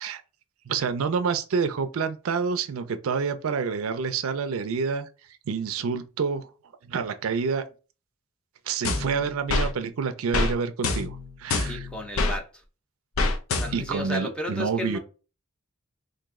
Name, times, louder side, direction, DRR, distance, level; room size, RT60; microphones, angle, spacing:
voice 1, 0.7-5.1 5.5-6.5 6.8-7.6 8.7-11.9 13.7-15.0, right 5 dB, 75° right, 0.4 m, -28 dB
sound 1, 8.8-9.7 10.3-10.5 10.8-12.4 13.2-14.0, left 3 dB, 70° left, 0.5 m, -26 dB
voice 2, 11.7-12.6 13.5-15.0, left 1 dB, 5° left, 0.6 m, -34 dB
3.0 x 2.6 x 3.6 m
head